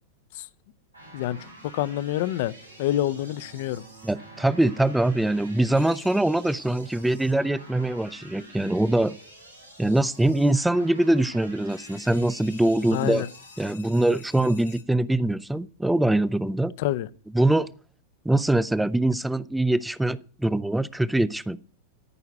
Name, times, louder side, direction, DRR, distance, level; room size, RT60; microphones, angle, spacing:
sound 1, 0.9-13.7, right 1 dB, 90° right, 7.0 m, -48 dB
voice 1, 1.1-1.5 1.7-2.5 2.8-3.8 12.9-13.3 16.8-17.1, left 13 dB, 50° left, 0.6 m, -27 dB
Bowed string instrument, 2.6-6.7, right 9 dB, 60° right, 3.4 m, -53 dB
voice 2, 4.0-9.1 9.8-13.2 13.6-16.7 17.3-17.7 18.3-21.6, right 1 dB, 5° right, 0.5 m, -23 dB
sound 2, 5.7-6.5 11.7-14.8, left 9 dB, 70° left, 1.4 m, -50 dB
14.0 x 5.8 x 9.0 m
figure-of-eight pair, 90°, 0 cm